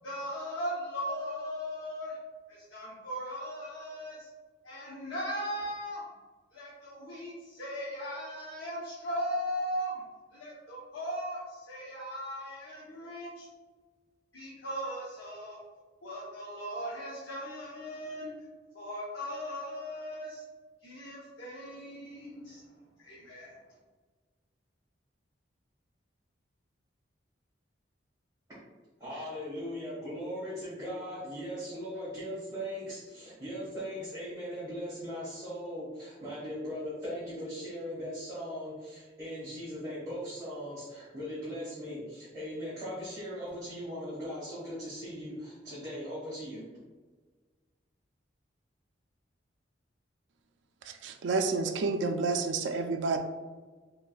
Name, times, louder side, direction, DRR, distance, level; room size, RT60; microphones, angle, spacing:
voice 1, 0.0-2.2 2.5-4.3 4.6-6.0 6.5-10.0 10.3-13.5 14.3-15.6 16.0-18.3 18.7-20.4 20.8-22.6 23.0-23.5, equal, 85° left, -7 dB, 0.9 m, -38 dB
voice 2, 29.0-46.6, equal, 20° right, -11 dB, 1.4 m, -39 dB
voice 3, 50.9-53.2, right 4 dB, 70° right, 4 dB, 0.3 m, -29 dB
4.9 x 3.1 x 2.3 m, 1.4 s
head